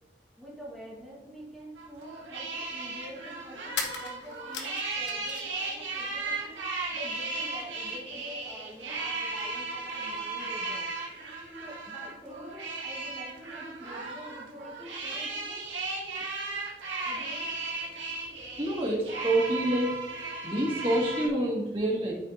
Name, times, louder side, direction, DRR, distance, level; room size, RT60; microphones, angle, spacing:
voice 1, 0.4-6.6 6.9-10.9 11.6-15.6 17.0-17.5, equal, ahead, -8 dB, 1.2 m, -46 dB
sound 1, 1.4-1.5 3.7-5.6 5.9-6.8, left 5 dB, 70° left, 1.1 m, -38 dB
sound 2, 1.8-21.3, right 3 dB, 85° right, 1.6 m, -36 dB
voice 2, 18.6-20.0 20.4-22.1, right 1 dB, 30° right, -3 dB, 1.9 m, -27 dB
13.0 x 5.0 x 2.6 m, 1.2 s
head